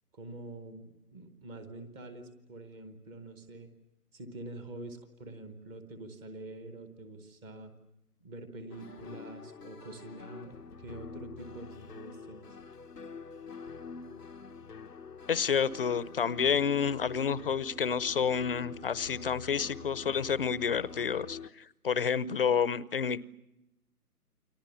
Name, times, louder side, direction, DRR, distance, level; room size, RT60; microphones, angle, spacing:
voice 1, 0.1-3.7 4.1-7.7 8.2-12.5, right 2 dB, 5° right, 9 dB, 0.9 m, -46 dB
sound 1, 8.7-21.5, left 5 dB, 90° left, 1.2 m, -46 dB
voice 2, 15.3-23.2, left 7 dB, 35° left, 19 dB, 0.8 m, -29 dB
29.5 x 24.0 x 7.0 m, 0.94 s
figure-of-eight pair, 150°, 46 cm